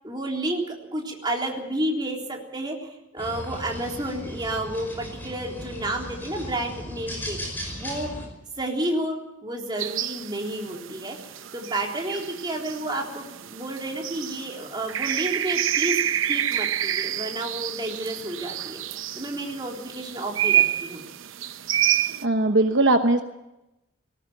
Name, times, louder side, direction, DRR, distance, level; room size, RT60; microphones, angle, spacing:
voice 1, 0.0-8.1 8.6-9.2 9.4-16.0 16.3-18.8 19.2-21.0, right 1 dB, 20° right, 0 dB, 3.7 m, -31 dB
sound 1, 3.2-8.2, equal, 10° left, 5.3 m, -37 dB
sound 2, 9.8-22.2, right 11 dB, 75° right, 0.8 m, -28 dB
voice 2, 22.2-23.2, right 2 dB, 60° right, 6 dB, 1.1 m, -19 dB
19.5 x 18.5 x 9.1 m, 0.94 s
head